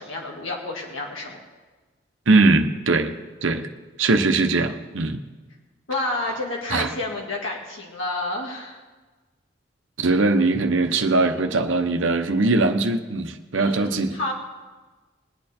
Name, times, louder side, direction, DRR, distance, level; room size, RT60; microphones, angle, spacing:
voice 1, 0.0-1.4 5.9-8.8 13.5-14.3, left 2 dB, 90° left, -1 dB, 2.1 m, -30 dB
voice 2, 2.3-3.1 3.4-3.7 4.0-5.2 6.7-6.9 10.0-14.1, right 3 dB, 85° right, 7 dB, 0.9 m, -20 dB
21.0 x 8.8 x 4.4 m, 1.3 s
head